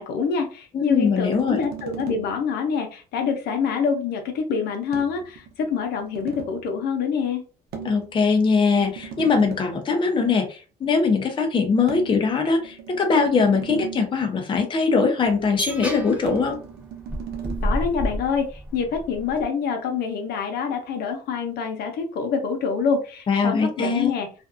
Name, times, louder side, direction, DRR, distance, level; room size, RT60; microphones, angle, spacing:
voice 1, 0.0-7.4 17.6-24.3, left 6 dB, 70° left, 4 dB, 0.7 m, -26 dB
voice 2, 0.7-1.6 7.8-16.6 23.3-24.1, left 4 dB, 30° left, 4 dB, 0.6 m, -21 dB
sound 1, 1.0-2.5 4.9-6.6 7.7-9.8 11.9-14.3 16.2-17.7, right 7 dB, 70° right, 0.7 m, -38 dB
sound 2, 15.2-19.4, equal, 5° right, 1.1 m, -31 dB
2.5 x 2.2 x 2.5 m, 0.35 s
cardioid pair, 110°, 17 cm